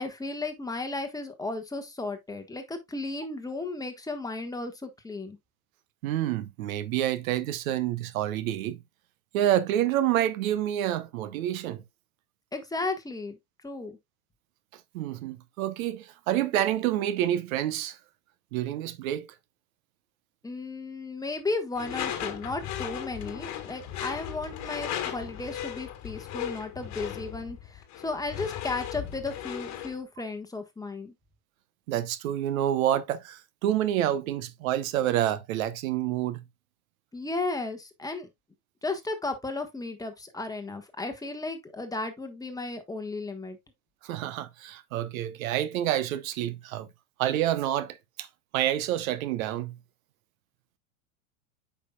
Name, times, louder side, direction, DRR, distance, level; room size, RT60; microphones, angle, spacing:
voice 1, 0.0-5.4 12.5-13.4 13.6-14.0 20.4-31.1 37.1-38.3 38.8-43.6, left 3 dB, 10° left, 1.3 m, -34 dB
voice 2, 6.0-8.8 9.3-11.8 14.9-18.0 18.5-19.3 31.9-36.4 44.0-46.9 47.2-48.3 48.5-49.8, right 12 dB, 70° right, 0.9 m, -28 dB
Door / Screech, 21.8-30.0, left 11 dB, 40° left, 1.6 m, -36 dB
8.2 x 5.8 x 2.3 m
hypercardioid pair, 115°, 42 cm